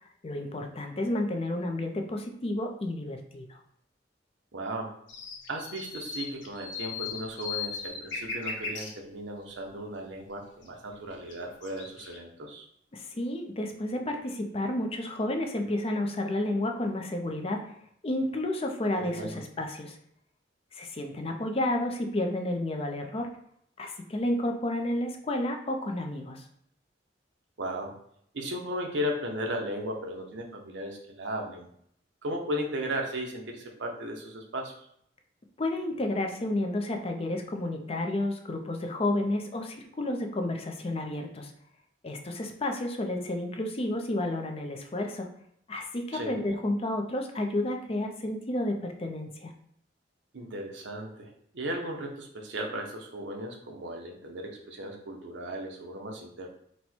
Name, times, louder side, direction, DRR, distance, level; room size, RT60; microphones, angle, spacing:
voice 1, 0.0-3.6 12.9-17.8 18.0-20.0 20.7-23.3 23.8-26.4 35.6-41.5 42.0-45.3 45.7-49.5, left 1 dB, 30° left, 4 dB, 0.5 m, -31 dB
voice 2, 4.5-4.9 5.5-12.7 19.0-19.4 27.6-28.0 28.3-31.7 32.2-34.9 46.1-46.4 50.3-51.3 51.5-56.5, equal, 75° right, 2 dB, 0.7 m, -36 dB
sound 1, 5.1-8.9 10.6-10.7 11.1-12.2, left 5 dB, 85° left, 0.9 m, -37 dB
4.2 x 2.2 x 4.3 m, 0.69 s
head